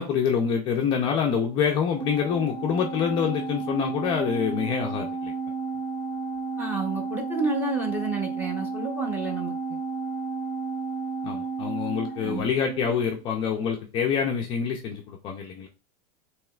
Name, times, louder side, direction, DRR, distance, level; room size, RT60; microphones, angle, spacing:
voice 1, 0.0-5.3 11.2-15.7, left 7 dB, 25° left, 1 dB, 0.5 m, -26 dB
Organ, 1.9-13.2, right 4 dB, 85° right, 1.9 m, -32 dB
voice 2, 6.6-9.8 12.2-12.5, right 3 dB, 10° right, 2 dB, 0.8 m, -30 dB
7.3 x 3.0 x 2.4 m, 0.34 s
supercardioid pair, 170°, 20 cm